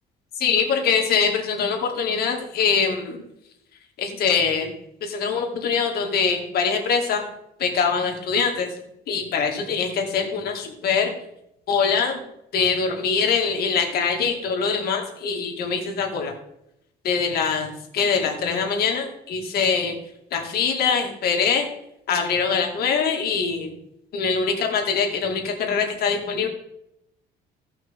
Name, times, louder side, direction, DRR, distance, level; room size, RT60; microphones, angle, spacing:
voice 1, 0.4-3.2 4.0-4.7 5.0-7.3 7.6-8.7 9.1-11.1 11.7-12.2 12.5-16.3 17.0-19.9 20.3-21.7 22.1-23.7 24.1-26.5, left 5 dB, 65° left, 2 dB, 2.2 m, -23 dB
16.5 x 5.7 x 3.6 m, 0.82 s
cardioid pair, 110°, 17 cm